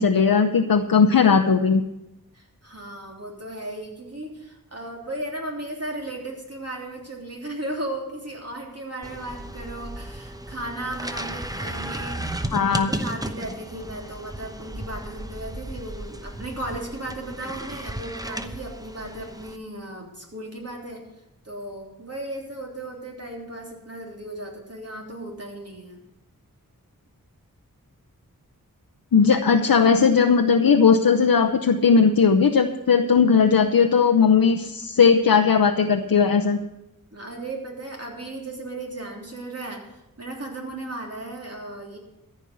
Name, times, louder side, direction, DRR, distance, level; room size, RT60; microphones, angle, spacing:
voice 1, 0.0-1.8 12.5-12.9 29.1-36.6, left 6 dB, 75° left, 6 dB, 0.7 m, -18 dB
voice 2, 2.3-21.1 21.4-26.0 37.1-39.9 40.2-42.0, right 1 dB, 45° right, -1 dB, 3.3 m, -35 dB
sound 1, 9.0-19.6, right 1 dB, 10° right, 0.9 m, -34 dB
14.0 x 5.4 x 9.2 m, 0.91 s
wide cardioid pair, 50°, 35 cm